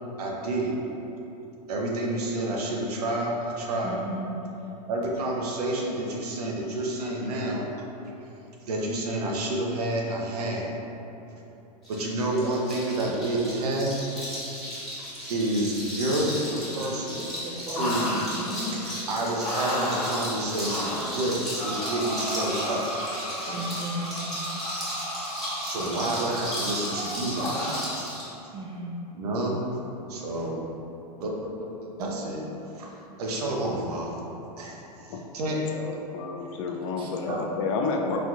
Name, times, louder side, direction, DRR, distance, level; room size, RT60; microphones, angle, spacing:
voice 1, 0.2-0.8 1.7-4.0 4.9-7.6 8.6-10.7 11.9-14.1 14.6-14.7 15.0-17.3 17.8-18.2 19.1-22.9 23.4-23.6 25.6-28.0 29.1-29.7 30.1-30.6 31.2-32.4 32.8-34.1 34.6-35.1 35.3-35.6 37.3-37.5, right 1 dB, 70° right, -1 dB, 0.7 m, -29 dB
voice 2, 3.8-4.4 17.4-18.7 23.5-24.2 28.5-29.0 37.0-37.1, right 1 dB, 25° right, -3 dB, 0.7 m, -35 dB
sound 1, 11.8-28.3, equal, ahead, 1.3 m, -35 dB
sound 2, 17.8-18.3 18.8-18.9 19.4-20.3 20.7-21.2 21.6-27.9, equal, 80° left, 0.9 m, -33 dB
voice 3, 35.7-38.2, left 4 dB, 50° left, 2 dB, 0.4 m, -30 dB
4.1 x 2.8 x 2.4 m, 2.9 s
hypercardioid pair, 105°, 21 cm